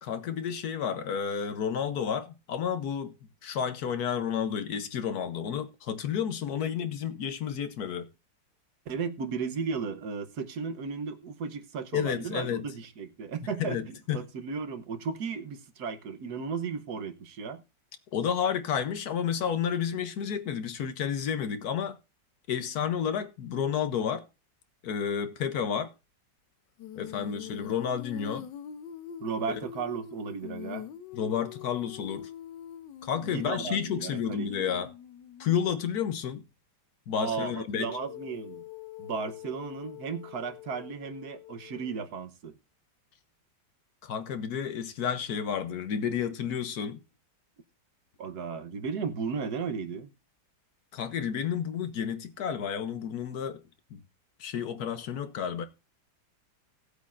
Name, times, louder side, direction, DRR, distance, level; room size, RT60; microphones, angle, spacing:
voice 1, 0.0-3.1 3.4-8.1 11.9-12.6 13.6-14.2 18.1-22.0 22.5-24.3 24.8-25.9 27.0-28.5 31.1-32.3 33.0-34.9 35.4-36.4 37.1-37.9 44.0-47.0 50.9-53.6 53.9-54.0 54.4-55.6, left 8 dB, 65° left, 1.2 m, -31 dB
voice 2, 8.9-17.6 29.2-30.9 33.2-34.7 37.1-38.6 39.0-42.6 48.2-50.1, right 5 dB, 65° right, 1.4 m, -35 dB
Female singing, 26.8-35.7 37.9-42.1, left 10 dB, 80° left, 1.4 m, -44 dB
17.5 x 8.4 x 2.5 m
omnidirectional pair, 1.9 m